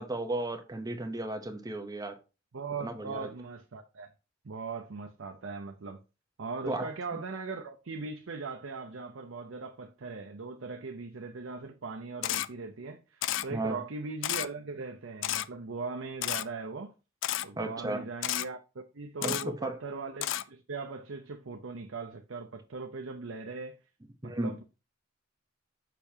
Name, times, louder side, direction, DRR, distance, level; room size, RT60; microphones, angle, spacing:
voice 1, 0.0-2.2 2.8-3.3 6.7-6.9 13.5-13.8 17.6-18.0 19.2-19.8 24.2-24.5, right 2 dB, 20° right, 0.8 m, -34 dB
voice 2, 2.5-4.1 4.4-6.0 6.4-16.9 17.4-23.8 24.2-24.6, right 4 dB, 70° right, 0.7 m, -39 dB
Camera, 12.2-12.5 13.2-13.5 14.2-14.5 15.2-15.5 16.2-16.4 17.2-17.5 18.2-18.5 19.2-19.4 20.2-20.4, left 13 dB, 65° left, 0.4 m, -31 dB
6.8 x 5.8 x 2.8 m
head